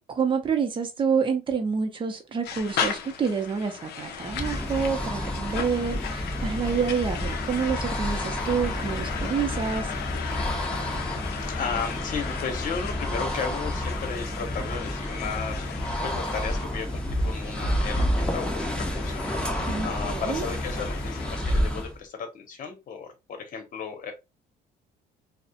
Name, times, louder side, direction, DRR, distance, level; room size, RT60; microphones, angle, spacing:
voice 1, 0.1-9.9 19.7-20.5, right 6 dB, 30° right, 0.6 m, -28 dB
sound 1, 2.4-21.6, left 7 dB, 70° left, 0.5 m, -36 dB
sound 2, 4.2-22.0, equal, 5° left, 0.7 m, -30 dB
voice 2, 11.3-15.8 16.0-19.2 19.8-24.1, left 6 dB, 50° left, 0.9 m, -34 dB
2.3 x 2.1 x 2.7 m
cardioid pair, 110°, 17 cm